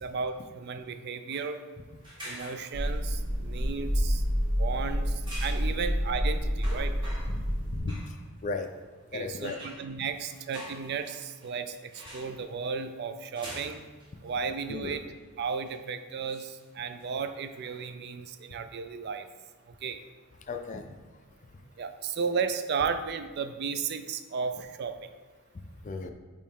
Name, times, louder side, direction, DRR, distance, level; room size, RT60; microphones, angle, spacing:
voice 1, 0.0-1.6 2.2-4.2 4.6-6.9 9.1-13.8 14.2-19.3 19.7-20.0 21.8-25.1, right 5 dB, 50° right, 9 dB, 0.3 m, -34 dB
sound 1, 1.3-1.5 2.0-3.1 5.2-5.7 6.2-6.3 6.6-7.5 7.9-8.2 9.4-11.5 11.9-12.4 13.4-14.1 14.6-14.7 15.5-15.8 16.3-17.8, equal, 20° right, 1.2 m, -45 dB
sound 2, 2.7-7.8, equal, 65° right, 1.4 m, -29 dB
voice 2, 7.5-8.0 8.4-8.7 9.1-9.6 14.7-15.0 20.5-20.9 25.8-26.1, left 3 dB, 35° left, 6 dB, 0.4 m, -35 dB
8.6 x 3.1 x 3.6 m, 1.3 s
head